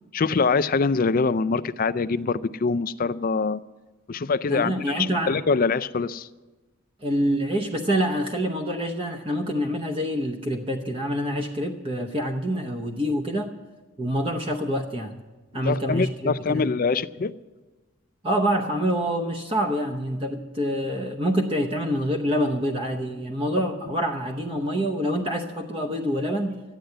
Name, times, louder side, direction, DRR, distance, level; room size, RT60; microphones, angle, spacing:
voice 1, 0.1-3.6 4.1-6.3 15.6-17.3, left 4 dB, 40° left, 14 dB, 0.4 m, -24 dB
voice 2, 4.5-5.3 7.0-13.5 14.0-15.1 15.5-16.7 18.2-26.6, equal, 25° right, 2 dB, 0.8 m, -26 dB
13.5 x 10.0 x 7.9 m, 1.2 s
head